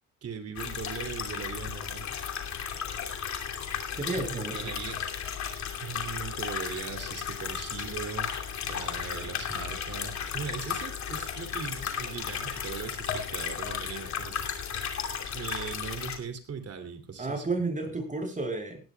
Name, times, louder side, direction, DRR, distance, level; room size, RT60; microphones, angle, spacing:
voice 1, 0.2-2.1 4.3-5.0 5.8-8.3 8.7-14.6 15.3-17.6, right 6 dB, 55° right, 9 dB, 2.9 m, -39 dB
sound 1, 0.6-16.2, left 7 dB, 65° left, 2.8 m, -34 dB
voice 2, 3.9-4.7 17.2-18.8, right 3 dB, 25° right, 4 dB, 7.1 m, -32 dB
19.0 x 16.5 x 2.3 m, 0.30 s
cardioid pair, 90°, 30 cm